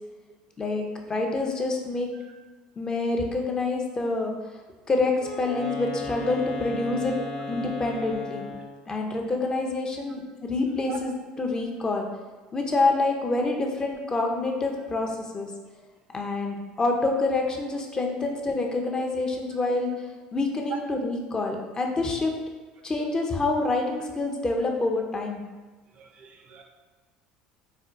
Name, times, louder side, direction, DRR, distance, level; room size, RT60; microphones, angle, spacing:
voice 1, 0.6-2.1 2.8-4.3 4.9-7.2 7.5-8.5 8.9-12.1 12.5-15.5 16.1-19.9 20.3-22.3 22.8-25.4, left 3 dB, 25° left, 2 dB, 0.5 m, -27 dB
Wind instrument woodwind instrument, 5.2-8.9, left 2 dB, 60° left, 0.9 m, -35 dB
voice 2, 26.0-26.6, right 8 dB, 45° right, 3 dB, 0.5 m, -43 dB
4.2 x 2.1 x 2.4 m, 1.2 s
hypercardioid pair, 80°, 3 cm